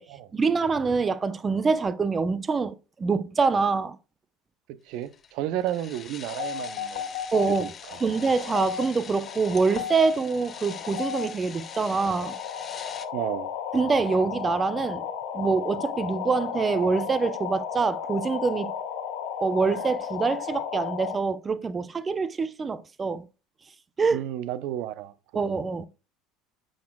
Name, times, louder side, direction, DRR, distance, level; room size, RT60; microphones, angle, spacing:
voice 1, 0.3-4.0 7.3-7.7 8.0-12.4 13.7-15.1 15.3-18.7 19.4-23.2 24.0-24.2 25.3-25.8, right 4 dB, 25° right, 0.6 m, -25 dB
voice 2, 4.7-7.1 7.6-8.0 13.1-13.5 24.1-25.1 25.5-25.6, right 12 dB, 65° right, 0.6 m, -32 dB
sound 1, 5.0-13.1, left 7 dB, 35° left, 0.9 m, -44 dB
sound 2, 6.3-21.2, left 8 dB, 75° left, 1.6 m, -34 dB
9.3 x 6.5 x 2.2 m
hypercardioid pair, 85°, 0 cm